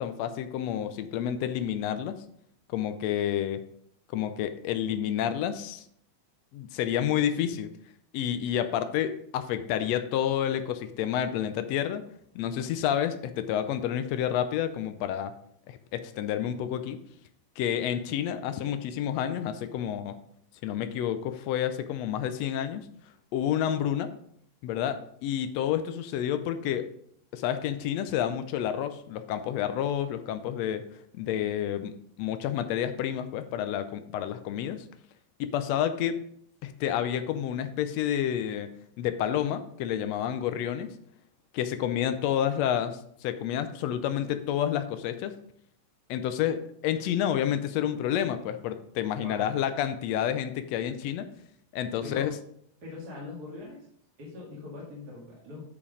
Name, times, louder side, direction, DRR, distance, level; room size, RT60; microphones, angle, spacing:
voice 1, 0.0-2.1 2.7-3.6 4.1-5.8 6.5-7.7 8.1-12.0 12.3-15.3 15.7-17.0 17.6-20.1 20.6-22.8 23.3-24.1 24.6-26.9 27.3-30.8 31.1-34.8 35.4-36.2 36.6-38.7 39.0-40.9 41.5-45.4 46.1-51.3 51.7-52.3, left 10 dB, 80° left, 10 dB, 1.5 m, -29 dB
voice 2, 49.2-49.5 52.0-52.3 52.8-53.9 54.2-55.6, left 2 dB, 30° right, -5 dB, 2.4 m, -41 dB
9.6 x 5.3 x 5.0 m, 0.67 s
omnidirectional pair, 3.7 m